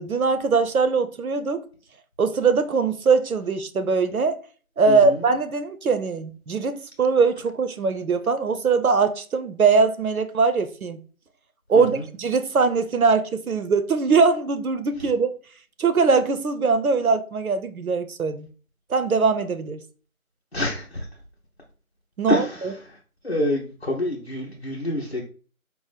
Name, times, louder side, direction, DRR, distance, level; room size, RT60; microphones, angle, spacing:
voice 1, 0.0-1.6 2.2-4.3 4.8-11.0 11.7-15.3 15.8-18.5 18.9-19.8 22.2-22.7, right 4 dB, 85° right, 0.6 m, -21 dB
voice 2, 4.9-5.2 11.8-12.0 20.5-21.0 22.3-22.7 23.2-25.3, left 1 dB, 45° left, 0.6 m, -27 dB
4.5 x 2.1 x 3.2 m
figure-of-eight pair, 175°, 42 cm